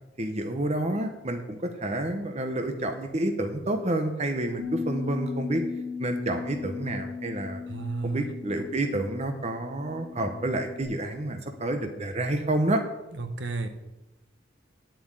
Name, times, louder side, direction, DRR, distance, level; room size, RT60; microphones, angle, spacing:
voice 1, 0.2-5.6 6.0-7.6 8.0-12.8, right 1 dB, 35° right, 5 dB, 1.0 m, -29 dB
Bass guitar, 4.6-10.8, left 5 dB, 80° right, 3.0 m, -37 dB
voice 2, 7.7-8.3 13.1-13.7, right 3 dB, 60° right, 7 dB, 1.2 m, -32 dB
9.7 x 7.5 x 8.9 m, 1.0 s
head